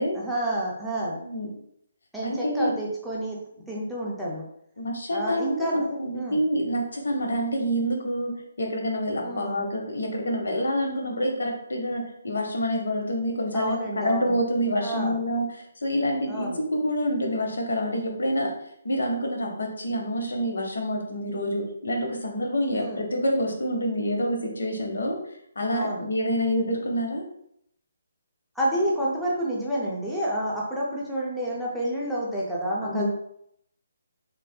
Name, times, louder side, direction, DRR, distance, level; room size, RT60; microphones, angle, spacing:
voice 1, 0.1-1.2 2.1-3.4 3.7-4.4 5.1-5.9 6.1-6.4 9.2-9.6 13.5-14.4 14.8-15.2 16.3-16.6 22.7-23.0 25.7-26.1 28.6-33.1, right 1 dB, ahead, -7 dB, 0.4 m, -29 dB
voice 2, 2.2-2.7 4.8-8.3 8.6-18.5 18.8-25.2 25.6-27.2 32.8-33.1, equal, 85° left, 2 dB, 0.8 m, -27 dB
3.2 x 2.6 x 2.2 m, 0.72 s
hypercardioid pair, 175°, 0 cm